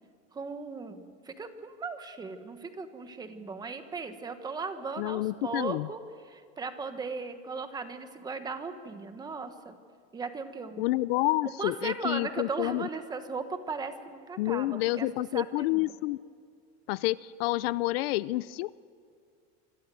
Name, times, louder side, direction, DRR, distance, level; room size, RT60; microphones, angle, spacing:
voice 1, 0.3-6.0 6.3-9.7 10.1-10.9 11.4-15.8, right 4 dB, 10° right, 8 dB, 1.3 m, -37 dB
voice 2, 5.0-5.9 10.8-12.9 14.4-16.2 16.9-18.7, left 18 dB, 65° left, 19 dB, 0.6 m, -29 dB
26.5 x 26.0 x 7.7 m, 2.2 s
supercardioid pair, 175°, 33 cm